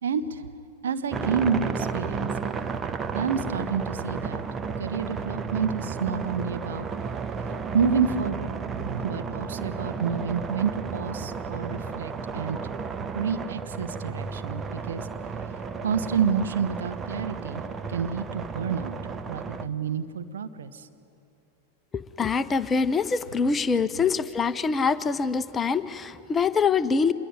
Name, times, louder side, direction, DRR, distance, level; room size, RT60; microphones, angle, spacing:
voice 1, 0.0-0.5 0.8-2.3 3.1-4.4 4.8-6.9 7.7-12.6 13.1-15.1 15.8-17.6 17.9-19.0 19.3-20.9 23.8-24.0, right 6 dB, 65° right, 8 dB, 1.3 m, -29 dB
sound 1, 1.1-19.7, right 5 dB, 20° right, 1.0 m, -33 dB
voice 2, 21.9-27.1, left 5 dB, 20° left, 14 dB, 0.8 m, -24 dB
26.0 x 21.5 x 9.9 m, 2.8 s
figure-of-eight pair, 90°, 0 cm